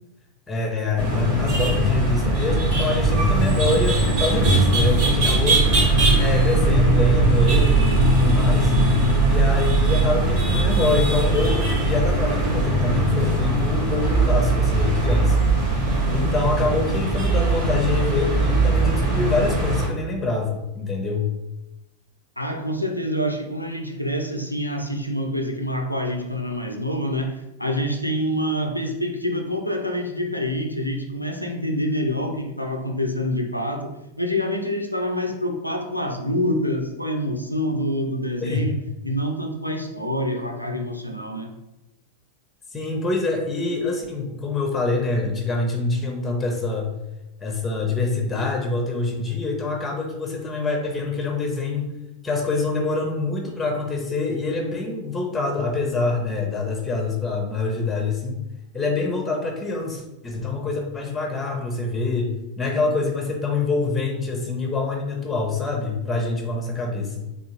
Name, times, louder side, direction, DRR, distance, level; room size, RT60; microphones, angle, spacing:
voice 1, 0.5-5.6 6.2-8.7 9.3-15.5 16.1-21.3 38.4-38.6 42.7-46.9 47.4-51.9 52.2-58.4 58.7-67.3, left 3 dB, 15° left, 1 dB, 0.7 m, -25 dB
sound 1, 1.0-19.9, right 2 dB, 45° right, 1.1 m, -20 dB
voice 2, 22.4-38.8 39.0-41.5, equal, 90° left, 3 dB, 0.4 m, -26 dB
3.6 x 2.4 x 2.9 m, 0.94 s
figure-of-eight pair, 90°, 0 cm